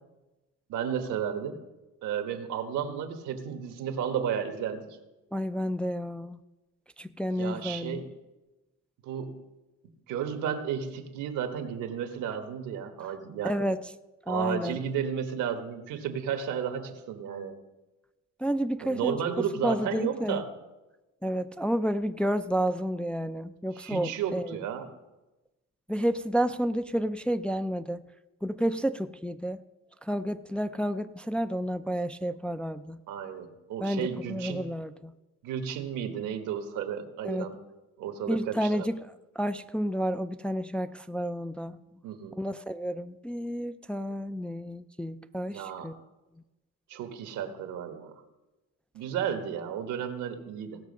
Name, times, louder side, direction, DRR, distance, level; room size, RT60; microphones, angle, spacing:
voice 1, 0.7-1.6 2.0-4.8 7.4-8.1 9.0-9.4 10.1-13.7 14.3-17.5 18.8-20.5 23.7-24.9 33.1-34.7 35.4-37.6 38.0-38.9 42.0-42.4 45.5-45.9 46.9-48.1 48.9-50.8, right 8 dB, 90° right, 7 dB, 1.3 m, -33 dB
voice 2, 5.3-6.4 7.0-8.1 13.4-13.8 14.3-14.8 18.4-19.2 19.6-20.4 21.2-24.6 25.9-28.0 28.4-29.6 30.0-33.0 33.8-35.1 37.2-37.5 38.3-39.1 39.4-41.8 42.3-45.9, equal, 5° left, 9 dB, 0.3 m, -30 dB
17.0 x 6.4 x 5.3 m, 1.1 s
cardioid pair, 90°, 30 cm